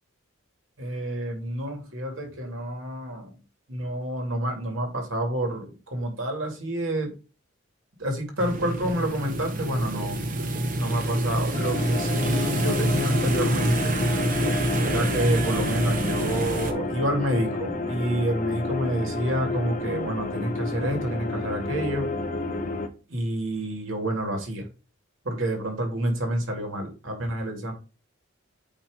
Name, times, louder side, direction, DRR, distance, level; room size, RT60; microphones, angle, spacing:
voice 1, 0.8-3.3 3.7-7.1 8.0-10.2 10.8-14.1 14.8-22.1 23.1-24.7 25.2-27.7, right 1 dB, 75° right, 3 dB, 2.5 m, -28 dB
sound 1, 8.4-16.7, right 1 dB, 40° right, 1.0 m, -27 dB
sound 2, 11.5-22.9, left 2 dB, 40° left, 0.8 m, -30 dB
8.9 x 3.2 x 4.9 m, 0.32 s
head